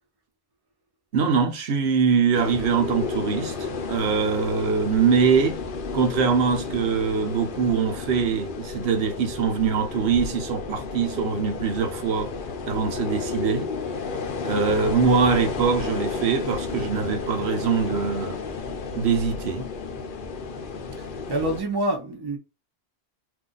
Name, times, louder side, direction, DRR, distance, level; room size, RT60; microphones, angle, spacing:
voice 1, 1.1-5.6 5.9-12.3 12.7-13.7 14.4-18.4 18.9-19.7, right 6 dB, 80° right, 1.0 m, -23 dB
sound 1, 2.3-21.6, left 4 dB, 60° left, 0.8 m, -32 dB
voice 2, 21.0-22.4, right 1 dB, 25° right, 0.8 m, -27 dB
2.6 x 2.5 x 3.8 m
omnidirectional pair, 1.1 m